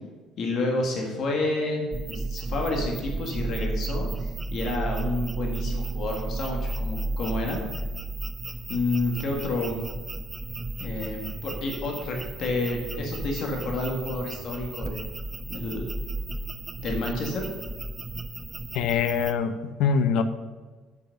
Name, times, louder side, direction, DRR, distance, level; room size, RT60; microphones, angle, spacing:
voice 1, 0.4-7.6 8.7-9.8 10.8-15.0 15.5-15.9 16.8-17.5, left 2 dB, 45° left, 1 dB, 1.6 m, -30 dB
sound 1, 1.9-19.3, right 2 dB, 15° right, 0.5 m, -33 dB
voice 2, 18.7-20.2, left 6 dB, 65° left, 11 dB, 0.7 m, -24 dB
7.8 x 7.1 x 5.7 m, 1.3 s
cardioid pair, 160°, 0 cm